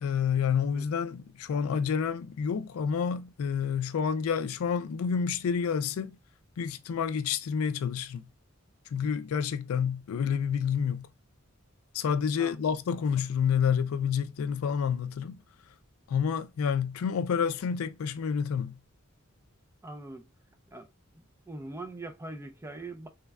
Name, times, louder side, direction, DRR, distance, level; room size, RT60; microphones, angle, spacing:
voice 1, 0.0-6.2 6.6-8.3 8.9-11.1 11.9-15.4 16.1-18.8, left 7 dB, 90° left, 0.4 m, -29 dB
voice 2, 19.8-20.3 20.7-20.9 21.2-23.1, right 2 dB, 15° right, 0.4 m, -42 dB
3.3 x 2.2 x 3.4 m
head